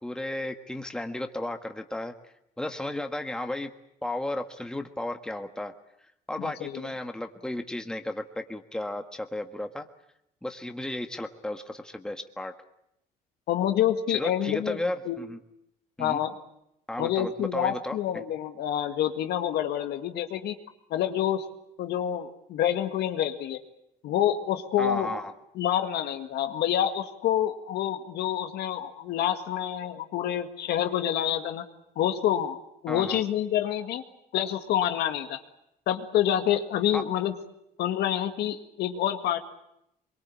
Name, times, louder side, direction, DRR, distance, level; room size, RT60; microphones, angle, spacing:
voice 1, 0.0-2.1 2.6-3.7 4.0-5.7 6.3-9.9 10.4-12.5 14.1-15.4 16.0-16.2 16.9-18.2 24.8-25.3 32.9-33.2 36.9-37.0, left 1 dB, 5° left, 6 dB, 1.6 m, -34 dB
voice 2, 6.4-6.8 13.5-14.8 15.1-15.2 16.0-16.3 17.0-20.6 20.9-21.5 21.8-23.6 24.0-25.1 25.6-31.7 32.0-32.6 32.8-34.0 34.3-35.4 35.9-37.3 37.8-39.4, left 11 dB, 75° left, 7 dB, 2.0 m, -27 dB
23.5 x 22.5 x 8.7 m, 0.79 s
cardioid pair, 110°, 17 cm